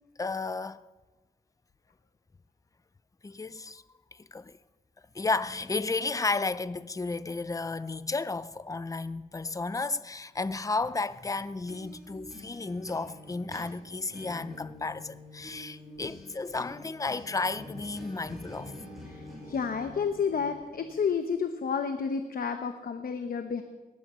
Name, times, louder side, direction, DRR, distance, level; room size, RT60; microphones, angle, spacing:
voice 1, 0.2-0.8 3.2-3.8 4.1-4.6 5.1-18.7, left 3 dB, 20° left, 0.5 m, -33 dB
sound 1, 11.3-21.0, left 1 dB, ahead, 5.9 m, -47 dB
voice 2, 19.1-23.6, left 6 dB, 65° left, 0.9 m, -31 dB
19.0 x 11.5 x 5.6 m
wide cardioid pair, 90°, 16 cm